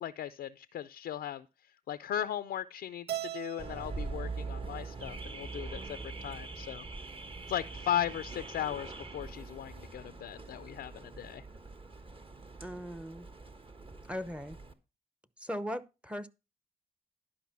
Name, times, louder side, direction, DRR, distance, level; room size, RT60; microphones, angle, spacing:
voice 1, 0.0-1.5 1.9-6.8 7.5-11.4, left 11 dB, 75° left, 0.5 m, -37 dB
Keyboard (musical), 3.1-5.4, right 13 dB, 85° right, 0.4 m, -42 dB
Car / Alarm, 3.6-14.7, right 3 dB, 35° right, 1.4 m, -43 dB
voice 2, 12.6-13.3 14.1-14.6 15.4-16.3, equal, 5° right, 0.8 m, -38 dB
11.0 x 5.0 x 5.9 m
supercardioid pair, 55°, 16 cm